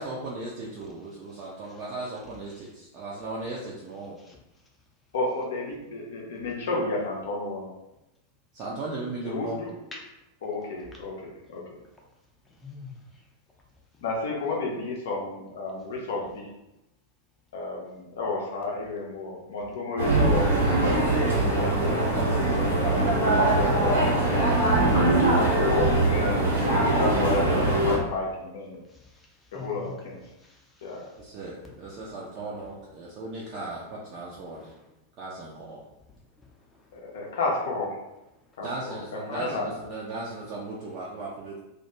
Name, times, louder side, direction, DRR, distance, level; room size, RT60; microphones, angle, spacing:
voice 1, 0.0-4.2 8.5-9.6 31.1-34.7 35.2-35.8 38.6-41.6, right 2 dB, 40° right, -5 dB, 0.4 m, -37 dB
voice 2, 5.1-7.7 9.3-9.7 10.4-11.8 14.0-16.5 17.5-20.7 21.5-22.7 23.3-24.5 25.5-28.8 29.5-30.2 30.8-31.1 36.9-38.0 38.6-39.7, left 3 dB, 60° left, 0 dB, 0.6 m, -32 dB
voice 3, 12.6-12.9 23.5-23.9 28.9-30.1 30.4-30.9 34.5-34.8, left 4 dB, 10° left, -2 dB, 0.5 m, -42 dB
sound 1, 20.0-28.0, right 2 dB, 80° right, 0.8 m, -22 dB
2.2 x 2.2 x 2.9 m, 0.92 s
figure-of-eight pair, 90°, 0 cm